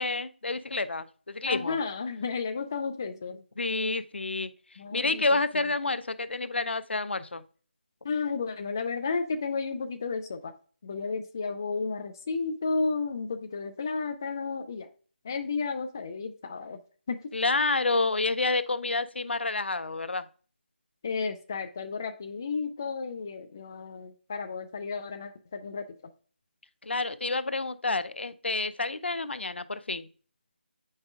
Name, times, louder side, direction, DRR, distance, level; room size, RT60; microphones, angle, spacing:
voice 1, 0.0-1.8 3.6-4.5 4.9-7.4 17.3-20.3 26.8-30.1, left 3 dB, 80° left, 13 dB, 0.6 m, -29 dB
voice 2, 1.4-3.4 4.8-5.2 5.5-5.7 8.0-10.5 10.8-14.9 15.2-16.8 17.1-17.3 21.0-25.9, left 4 dB, 20° left, 6 dB, 0.3 m, -32 dB
7.9 x 5.4 x 2.4 m, 0.41 s
figure-of-eight pair, 170°, 6 cm